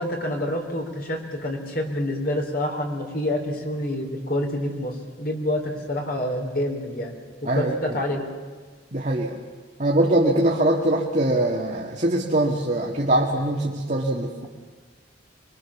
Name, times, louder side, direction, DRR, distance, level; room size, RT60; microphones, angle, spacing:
voice 1, 0.0-7.2 7.4-8.2, left 1 dB, 50° left, 2 dB, 3.7 m, -27 dB
voice 2, 7.5-8.0 8.9-9.4 9.8-14.5, right 1 dB, 40° right, -1 dB, 1.8 m, -22 dB
26.0 x 22.5 x 7.2 m, 1.5 s
head